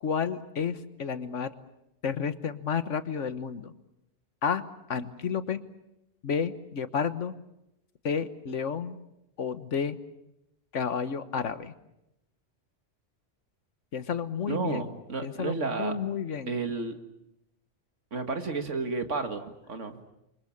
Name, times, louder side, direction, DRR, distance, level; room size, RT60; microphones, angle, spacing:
voice 1, 0.0-1.5 2.0-3.7 4.4-4.6 4.9-5.6 6.2-7.3 8.0-9.0 9.4-10.0 10.7-11.7 13.9-14.9 15.2-16.5, left 6 dB, 90° left, 11 dB, 1.6 m, -31 dB
voice 2, 14.5-16.0 16.5-17.0 18.1-20.0, right 4 dB, 85° right, 6 dB, 2.3 m, -32 dB
29.0 x 24.5 x 7.3 m, 0.86 s
omnidirectional pair, 1.2 m